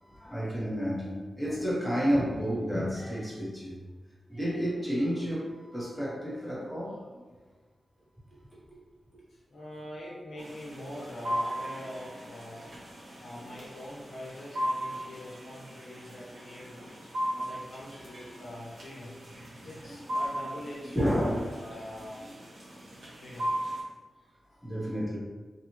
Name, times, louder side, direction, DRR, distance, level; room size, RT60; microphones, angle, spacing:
voice 1, 0.0-3.8 4.3-7.2 12.7-12.8 13.3-13.6 16.6-16.7 19.6-19.7 20.9-21.5 22.2-22.3 24.6-25.2, equal, ahead, -7 dB, 1.0 m, -31 dB
voice 2, 9.3-12.7 13.2-16.8 17.3-19.2 19.6-22.2 23.2-23.5 24.5-24.6, equal, 70° left, -5 dB, 0.7 m, -43 dB
sound 1, 10.4-23.8, equal, 90° right, 0.8 m, -37 dB
2.7 x 2.4 x 2.9 m, 1.3 s
wide cardioid pair, 90°, 0 cm